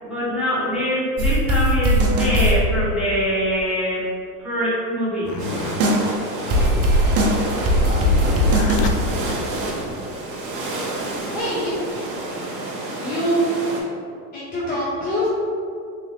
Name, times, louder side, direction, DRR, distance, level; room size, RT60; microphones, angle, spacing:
voice 1, 0.0-4.1 4.4-5.3, equal, ahead, -11 dB, 1.3 m, -23 dB
sound 1, 1.2-2.6 5.8-6.1 6.5-8.9, equal, 30° right, 0.6 m, -18 dB
sound 2, 5.2-10.1 10.9-11.8, left 4 dB, 80° left, 0.6 m, -31 dB
sound 3, 5.4-13.8, right 2 dB, 45° right, 1.0 m, -29 dB
voice 2, 7.8-8.2 11.0-11.8 13.0-13.4 14.3-15.3, equal, 20° left, -8 dB, 0.6 m, -25 dB
3.8 x 2.4 x 3.3 m, 2.4 s
supercardioid pair, 105°, 48 cm